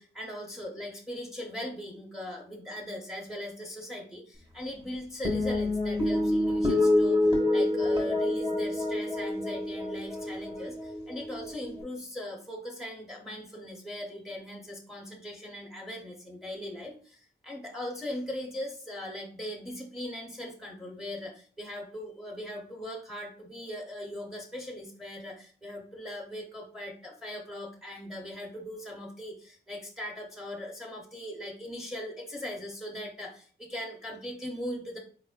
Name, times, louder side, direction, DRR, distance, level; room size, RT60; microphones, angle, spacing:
voice 1, 0.0-35.0, left 1 dB, ahead, 1 dB, 0.6 m, -40 dB
sound 1, 5.3-11.8, left 1 dB, 25° right, 1.1 m, -27 dB
4.1 x 3.0 x 2.3 m, 0.44 s
wide cardioid pair, 130°, 20 cm